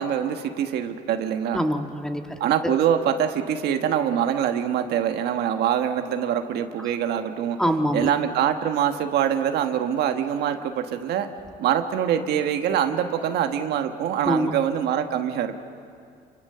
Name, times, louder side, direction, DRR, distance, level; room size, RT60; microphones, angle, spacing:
voice 1, 0.0-1.6 2.4-7.6 7.9-11.3 11.6-15.6, right 9 dB, 75° right, 7 dB, 1.4 m, -24 dB
voice 2, 1.5-2.2 7.6-8.1 14.2-14.5, equal, 5° left, 4 dB, 1.7 m, -24 dB
27.5 x 25.0 x 6.8 m, 2.3 s
cardioid pair, 110°, 17 cm